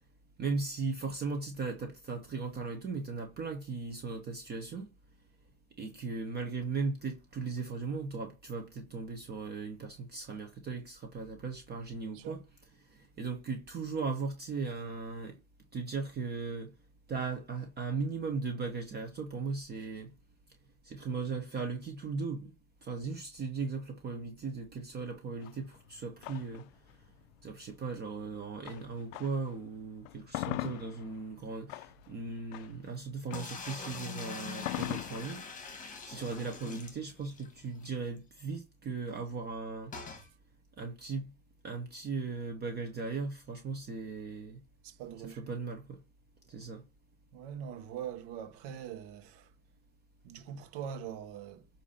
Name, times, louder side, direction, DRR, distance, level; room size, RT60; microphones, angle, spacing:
voice 1, 0.4-4.9 5.8-12.4 12.8-15.4 15.7-16.7 17.1-20.1 20.8-22.6 22.8-26.7 27.4-35.4 36.0-39.9 40.8-41.3 41.6-44.6 45.2-46.0 46.5-46.8, right 4 dB, 20° right, 1.0 m, -37 dB
voice 2, 12.0-12.4 44.8-45.5 47.3-49.5 50.2-51.7, right 8 dB, 50° right, 1.3 m, -43 dB
sound 1, 25.4-29.6 29.9-37.9, left 18 dB, 65° left, 0.5 m, -42 dB
sound 2, 33.3-37.5 37.8-37.9 38.2-38.3 39.9-40.3, left 5 dB, 15° left, 1.6 m, -43 dB
8.2 x 2.9 x 5.6 m
supercardioid pair, 125°, 44 cm